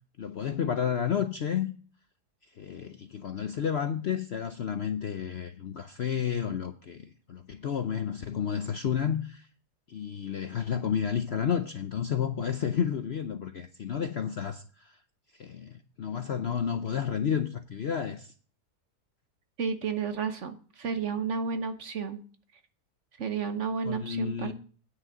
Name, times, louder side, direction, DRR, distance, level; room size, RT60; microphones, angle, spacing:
voice 1, 0.2-1.7 2.5-9.5 9.9-15.0 15.3-18.3 23.8-24.5, left 8 dB, 60° left, 0.7 m, -31 dB
voice 2, 19.6-22.2 23.2-24.5, right 6 dB, 50° right, 1.1 m, -32 dB
9.6 x 6.2 x 7.6 m
omnidirectional pair, 1.7 m